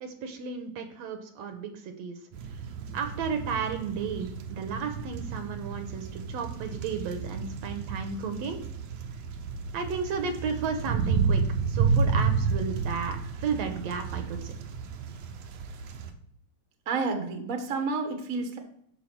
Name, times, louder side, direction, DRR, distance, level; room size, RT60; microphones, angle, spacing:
voice 1, 0.0-2.2 2.9-8.6 9.7-14.5, right 5 dB, 70° right, 6 dB, 1.9 m, -33 dB
sound 1, 2.3-16.1, right 5 dB, 85° right, 2.3 m, -31 dB
voice 2, 16.9-18.6, right 4 dB, 50° right, 4 dB, 0.9 m, -30 dB
12.5 x 4.7 x 4.5 m, 0.69 s
omnidirectional pair, 3.4 m